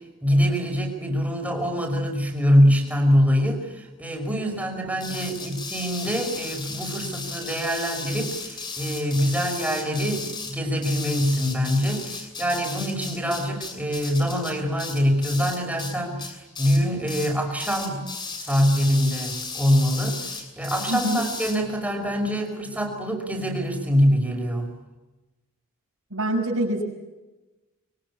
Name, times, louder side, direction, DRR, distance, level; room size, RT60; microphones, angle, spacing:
voice 1, 0.2-18.1 18.4-24.7, equal, 5° right, 2 dB, 5.4 m, -24 dB
sound 1, 5.0-15.9 16.2-16.8 17.1-17.3 17.6-21.6, left 4 dB, 20° left, 7.2 m, -35 dB
voice 2, 20.9-21.2 26.1-26.8, right 1 dB, 80° right, -5 dB, 6.5 m, -25 dB
25.5 x 23.5 x 8.7 m, 1.1 s
head